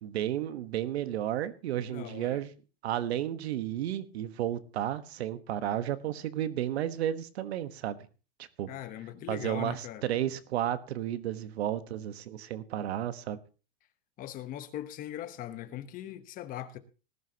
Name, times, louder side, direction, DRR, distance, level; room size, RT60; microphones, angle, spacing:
voice 1, 0.0-2.5 2.8-8.0 8.4-8.7 9.3-13.4, right 11 dB, 80° right, 1.3 m, -32 dB
voice 2, 1.9-2.4 8.7-10.0 14.2-16.8, left 12 dB, 25° left, 1.0 m, -40 dB
19.5 x 11.0 x 2.9 m
supercardioid pair, 155°, 31 cm